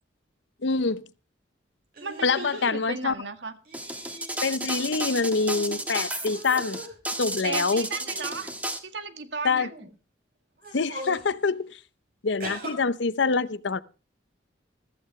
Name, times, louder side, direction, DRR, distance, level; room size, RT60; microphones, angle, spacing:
voice 1, 0.6-1.0 2.2-3.1 4.4-6.8 7.2-7.9 9.4-9.7 10.7-11.7 12.2-13.8, left 4 dB, 70° left, 0.7 m, -25 dB
sound 1, 1.9-2.7 3.6-4.4 4.7-5.8 6.2-7.0 7.7-8.8 9.5-9.9 10.6-11.3 12.4-12.7, right 1 dB, 55° right, 6.8 m, -41 dB
voice 2, 2.0-3.5 7.4-8.5 8.8-9.7, right 4 dB, 70° right, 1.8 m, -35 dB
sound 2, 3.7-8.8, right 1 dB, 10° right, 1.5 m, -32 dB
15.5 x 14.0 x 3.2 m
head